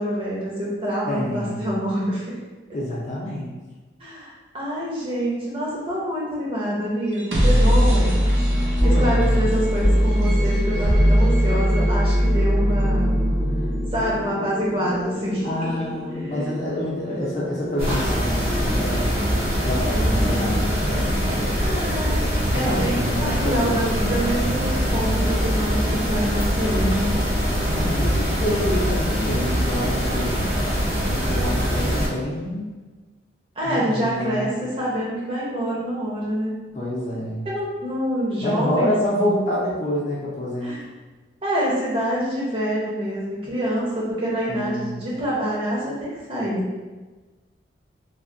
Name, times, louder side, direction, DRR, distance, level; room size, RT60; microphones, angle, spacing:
voice 1, 0.0-2.3 4.0-8.2 8.8-13.2 13.9-15.7 16.1-16.5 21.6-22.2 22.5-27.1 33.6-36.6 37.4-39.4 40.6-40.8 41.4-46.7, equal, 30° right, -6 dB, 0.7 m, -26 dB
voice 2, 1.1-1.7 2.7-3.6 8.8-9.5 10.9-11.6 15.4-19.2 19.6-21.5 22.5-23.9 27.6-30.4 31.1-32.7 33.6-34.5 36.7-37.4 38.4-40.8 44.5-45.0, left 1 dB, 40° left, -5 dB, 0.6 m, -27 dB
sound 1, 7.0-20.9, equal, 70° right, 0.6 m, -22 dB
sound 2, 17.8-32.1, equal, 50° right, 1.0 m, -23 dB
3.3 x 2.1 x 2.6 m, 1.3 s
head